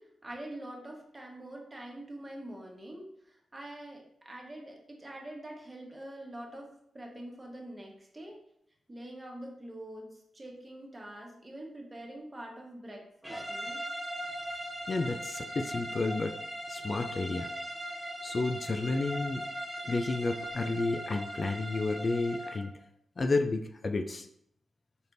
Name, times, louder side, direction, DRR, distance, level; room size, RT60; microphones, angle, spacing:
voice 1, 0.0-8.4 8.9-13.8, right 1 dB, 25° right, -1 dB, 1.2 m, -45 dB
sound 1, 13.2-22.7, equal, ahead, 0.6 m, -39 dB
voice 2, 14.9-16.4 16.7-17.5 18.2-19.4 19.8-22.7 23.2-24.3, left 3 dB, 45° left, 6 dB, 0.3 m, -31 dB
4.3 x 3.3 x 2.6 m, 0.72 s
cardioid pair, 55°, 0 cm